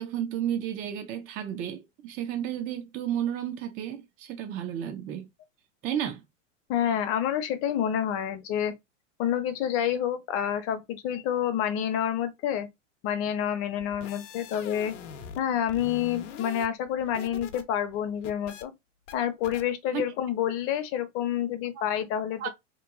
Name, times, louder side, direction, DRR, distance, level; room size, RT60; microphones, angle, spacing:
voice 1, 0.0-5.3 5.8-6.2 19.9-20.0 21.7-21.8 22.4-22.5, right 10 dB, 25° right, 0.4 m, -32 dB
voice 2, 6.7-8.7 9.2-12.7 13.0-14.9 15.4-18.7 19.1-22.5, left 10 dB, 35° left, 0.7 m, -28 dB
sound 1, 13.8-15.4 15.7-17.6 17.9-18.6 19.1-19.2 19.4-19.6, left 7 dB, 70° left, 0.8 m, -43 dB
3.0 x 2.2 x 3.5 m
hypercardioid pair, 115°, 38 cm